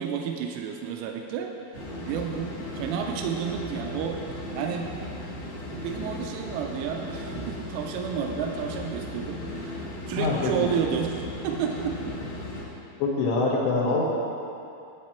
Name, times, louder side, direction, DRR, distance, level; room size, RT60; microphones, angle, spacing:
voice 1, 0.0-4.2 4.6-4.9 5.8-12.0, right 7 dB, 85° right, 2 dB, 3.2 m, -31 dB
sound 1, 1.7-12.6, left 1 dB, 55° left, 2.4 m, -36 dB
voice 2, 10.2-10.7 13.0-14.0, left 3 dB, 75° left, -3 dB, 3.0 m, -24 dB
10.5 x 8.8 x 4.4 m, 2.6 s
omnidirectional pair, 5.7 m